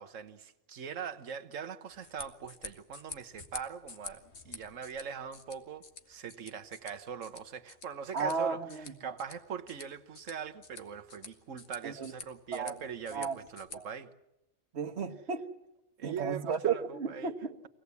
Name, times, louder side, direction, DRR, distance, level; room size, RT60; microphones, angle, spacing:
voice 1, 0.0-14.1 16.0-17.3, right 7 dB, 90° right, 1.5 m, -41 dB
sound 1, 1.9-13.8, left 4 dB, 60° left, 1.8 m, -50 dB
voice 2, 8.1-9.1 11.8-12.1 12.5-12.7 13.1-13.4 13.7-13.8 14.7-15.4 16.0-17.7, right 6 dB, 60° right, 1.5 m, -34 dB
24.5 x 18.0 x 8.3 m
omnidirectional pair, 1.3 m